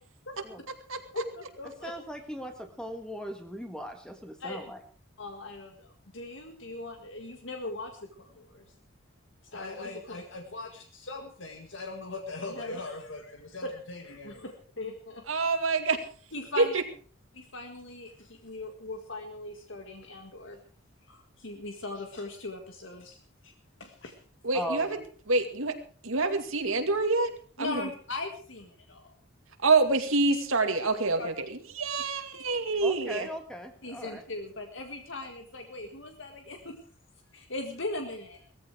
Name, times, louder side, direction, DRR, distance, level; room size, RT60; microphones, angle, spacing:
voice 1, 1.1-1.9 4.4-4.6 5.2-8.6 9.4-15.2 16.3-16.8 17.3-20.6 21.1-23.2 23.4-23.5 23.8-24.1 27.6-29.1 31.2-31.3 33.8-36.8 37.3-38.4, left 2 dB, 65° left, 4 dB, 1.9 m, -39 dB
voice 2, 1.8-4.8 24.5-25.0 32.8-34.2, equal, 5° left, 5 dB, 1.7 m, -38 dB
voice 3, 15.3-16.0 16.6-16.8 24.4-24.9 25.3-25.7 26.0-27.3 27.6-27.8 29.6-33.3, right 3 dB, 80° right, 6 dB, 2.4 m, -26 dB
18.0 x 14.5 x 4.7 m, 0.42 s
head